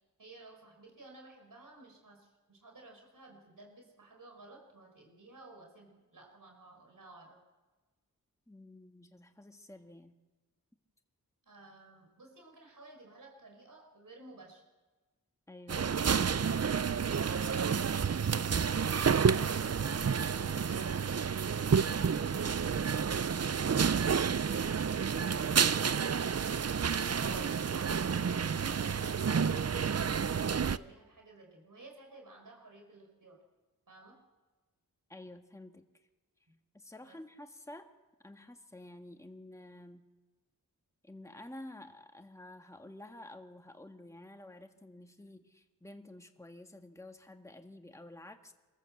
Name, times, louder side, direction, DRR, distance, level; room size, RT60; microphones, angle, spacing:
voice 1, 0.2-7.4 11.4-14.6 17.2-21.0 27.3-33.4 33.9-34.2 36.5-36.6 37.0-37.2, right 2 dB, 65° right, 1 dB, 5.6 m, -54 dB
voice 2, 8.5-10.1 15.5-15.9 27.2-27.6 35.1-35.8 36.7-37.9 38.2-40.1 41.0-48.5, left 1 dB, 10° left, 5 dB, 1.7 m, -50 dB
sound 1, 15.7-30.8, right 6 dB, 45° right, 0.7 m, -30 dB
26.0 x 14.5 x 7.8 m, 1.2 s
cardioid pair, 40°, 36 cm